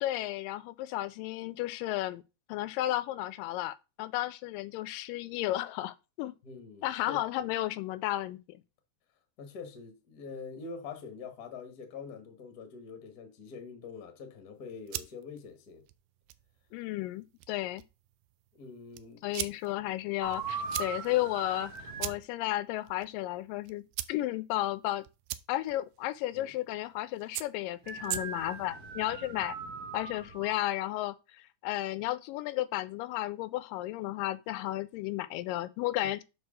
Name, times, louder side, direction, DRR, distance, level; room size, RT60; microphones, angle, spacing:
voice 1, 0.0-2.2 2.5-6.4 6.8-8.6 16.7-17.8 19.2-21.7 22.0-25.0 25.5-29.6 29.9-36.2, left 15 dB, 85° left, 2.2 m, -33 dB
voice 2, 6.4-7.2 9.4-15.9 18.5-19.2 26.3-26.5 36.0-36.1, left 5 dB, 50° left, 1.2 m, -45 dB
sound 1, 14.6-28.7, right 15 dB, 85° right, 2.3 m, -44 dB
sound 2, 20.2-22.2 27.8-30.5, right 4 dB, 65° right, 0.9 m, -40 dB
6.4 x 4.9 x 6.2 m
omnidirectional pair, 3.9 m